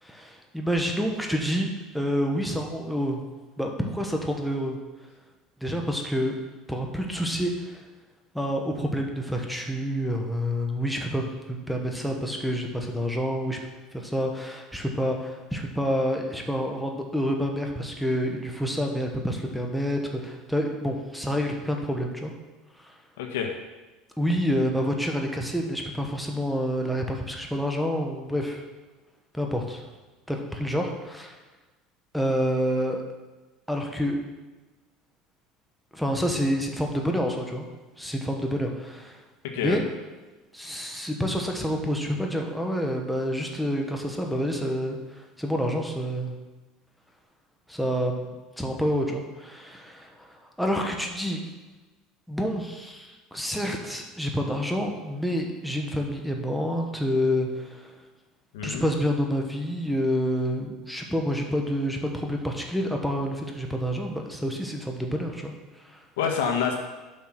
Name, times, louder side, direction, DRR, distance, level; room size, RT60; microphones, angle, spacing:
voice 1, 0.0-1.7 1.9-3.2 3.6-4.8 5.6-6.4 6.7-7.8 8.3-13.6 13.9-22.3 22.7-23.0 24.2-28.6 29.3-29.8 30.3-31.4 32.1-33.0 33.7-34.2 35.9-37.7 38.0-39.2 39.6-39.9 40.5-46.3 47.7-51.4 52.3-58.0 58.6-66.0, equal, ahead, 1 dB, 1.4 m, -28 dB
voice 2, 23.2-23.5 39.5-39.8 58.5-58.8 66.2-66.8, left 7 dB, 85° left, 3 dB, 1.5 m, -27 dB
8.4 x 5.7 x 6.1 m, 1.2 s
supercardioid pair, 110°, 0 cm